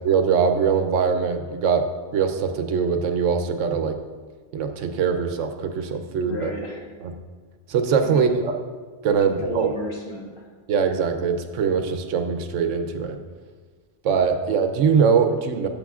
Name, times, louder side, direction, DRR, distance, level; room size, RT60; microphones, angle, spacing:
voice 1, 0.0-1.8 2.1-4.0 4.5-6.5 7.0-7.1 7.7-8.5 9.0-9.7 10.7-13.2 14.0-15.7, right 6 dB, 85° right, 7 dB, 1.0 m, -22 dB
voice 2, 6.2-6.9 8.0-8.3 9.2-10.5, left 1 dB, 50° left, -3 dB, 1.7 m, -32 dB
12.0 x 6.6 x 2.4 m, 1.5 s
omnidirectional pair, 1.2 m